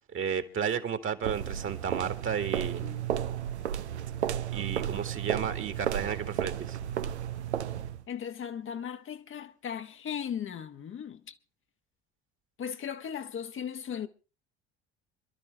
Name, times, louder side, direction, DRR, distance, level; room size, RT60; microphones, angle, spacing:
voice 1, 0.1-2.9 4.5-6.8, right 7 dB, 40° right, 1.8 m, -33 dB
sound 1, 1.2-8.1, right 10 dB, 90° right, 0.7 m, -33 dB
voice 2, 8.1-11.3 12.6-14.1, left 8 dB, 40° left, 1.1 m, -37 dB
26.5 x 12.0 x 3.3 m
hypercardioid pair, 65°, 33 cm